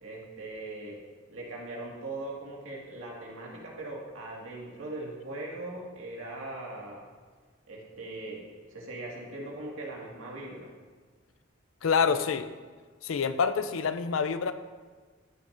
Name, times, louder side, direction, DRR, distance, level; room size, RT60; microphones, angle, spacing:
voice 1, 0.0-1.0 1.3-7.1 7.7-10.7 12.0-12.2, right 2 dB, 80° right, -3 dB, 1.9 m, -40 dB
voice 2, 11.8-12.4 13.0-14.5, left 6 dB, 75° left, 11 dB, 0.5 m, -26 dB
13.5 x 6.5 x 2.6 m, 1.5 s
head